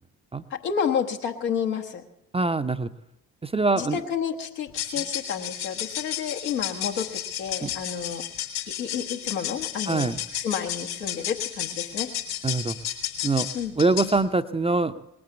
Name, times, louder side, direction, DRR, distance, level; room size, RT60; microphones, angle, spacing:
voice 1, 0.5-2.0 3.7-8.2 8.7-12.1 13.5-13.7, left 7 dB, 80° left, 2 dB, 1.1 m, -30 dB
voice 2, 2.3-2.9 3.4-4.0 7.6-7.7 9.9-10.2 12.4-12.8 13.2-13.5 13.8-15.0, right 3 dB, 10° right, 9 dB, 0.5 m, -24 dB
sound 1, 4.7-14.2, left 11 dB, 65° left, 2.2 m, -33 dB
19.5 x 8.7 x 7.0 m, 0.87 s
figure-of-eight pair, 45°, 50 cm